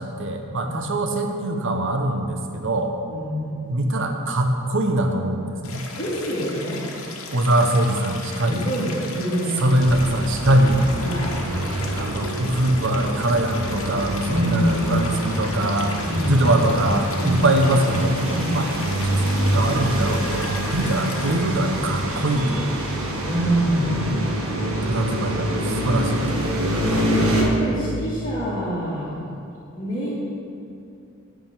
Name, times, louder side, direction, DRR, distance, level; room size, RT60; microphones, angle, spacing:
voice 1, 0.0-2.9 3.6-5.8 7.3-8.7 9.6-10.8 12.0-18.2 18.5-18.7 19.0-22.6 24.8-26.2, right 1 dB, 60° right, 4 dB, 0.9 m, -22 dB
voice 2, 3.1-3.5 6.0-6.8 8.4-9.7 11.0-11.3 14.3-14.7 16.0-16.3 17.2-17.4 18.3-18.6 23.2-24.3 26.8-29.1 29.7-30.1, right 1 dB, 35° left, -12 dB, 2.1 m, -26 dB
Stream, 5.6-21.4, left 4 dB, 75° left, 1.2 m, -37 dB
sound 1, 9.8-27.4, right 1 dB, 80° right, 1.5 m, -26 dB
9.1 x 5.0 x 7.4 m, 2.6 s
head